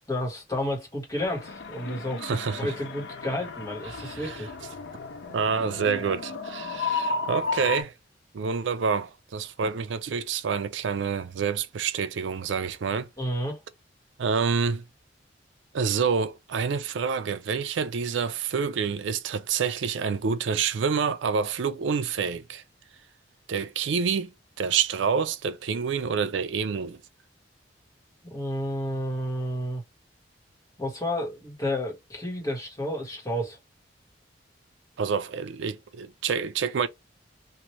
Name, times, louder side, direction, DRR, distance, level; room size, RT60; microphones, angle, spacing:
voice 1, 0.0-4.5 13.2-13.6 28.2-29.8 30.8-33.6, equal, 20° left, 1.4 m, -31 dB
sound 1, 1.2-7.8, left 4 dB, 70° left, 0.6 m, -34 dB
voice 2, 2.2-2.7 3.9-4.4 5.3-7.9 8.3-13.1 14.2-14.8 15.7-22.6 23.5-27.0 35.0-36.9, right 6 dB, 75° right, 0.4 m, -28 dB
3.0 x 2.6 x 3.0 m
head